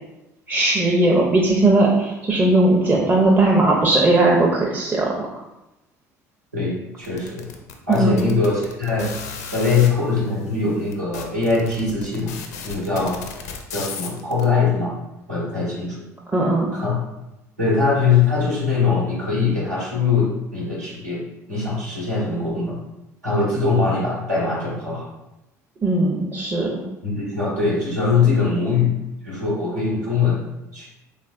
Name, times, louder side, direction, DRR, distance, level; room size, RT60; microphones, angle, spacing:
voice 1, 0.5-5.3 7.9-8.2 16.3-16.7 25.8-26.8, right 2 dB, 20° right, -4 dB, 0.6 m, -18 dB
voice 2, 6.5-7.4 7.9-9.1 9.5-12.4 12.6-13.2 13.7-14.9 15.3-16.0 16.7-17.0 17.6-21.2 21.5-22.7 23.2-25.1 27.0-28.9 29.2-30.4 30.7-30.9, left 4 dB, 90° right, -7 dB, 1.2 m, -21 dB
sound 1, 7.0-9.9 10.6-10.7 10.9-14.4, left 6 dB, 70° left, 0.4 m, -34 dB
3.3 x 3.1 x 2.4 m, 0.94 s
figure-of-eight pair, 65°, 9 cm